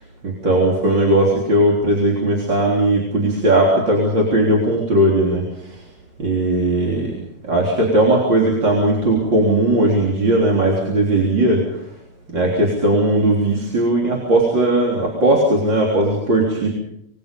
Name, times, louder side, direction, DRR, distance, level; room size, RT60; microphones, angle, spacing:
voice 1, 0.2-5.7 6.2-7.1 7.5-11.7 12.3-16.7, right 1 dB, 30° right, -2 dB, 4.0 m, -17 dB
26.5 x 21.5 x 5.4 m, 0.75 s
omnidirectional pair, 4.3 m